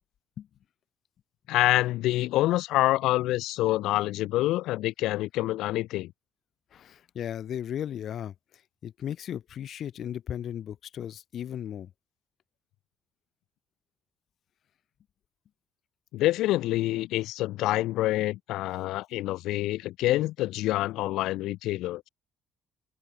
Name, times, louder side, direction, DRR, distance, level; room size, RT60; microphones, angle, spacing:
voice 1, 1.5-6.1 16.1-22.1, left 16 dB, 70° left, 1.1 m, -26 dB
voice 2, 6.7-11.9, left 10 dB, 40° left, 1.3 m, -36 dB
open air
cardioid pair, 170°, 0 cm